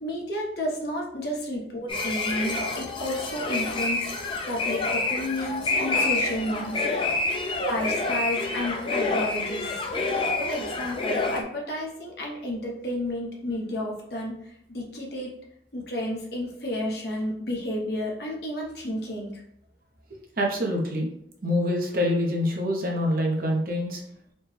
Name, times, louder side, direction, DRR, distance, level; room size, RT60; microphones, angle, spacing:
voice 1, 0.0-4.1 4.4-6.8 7.6-9.8 10.4-15.3 15.7-19.4, left 1 dB, 60° left, -2 dB, 0.9 m, -31 dB
sound 1, 1.9-11.4, left 3 dB, 30° left, 0.4 m, -28 dB
voice 2, 20.4-21.1 21.4-24.0, left 1 dB, 50° right, 0 dB, 0.7 m, -26 dB
4.2 x 2.2 x 3.2 m, 0.73 s
head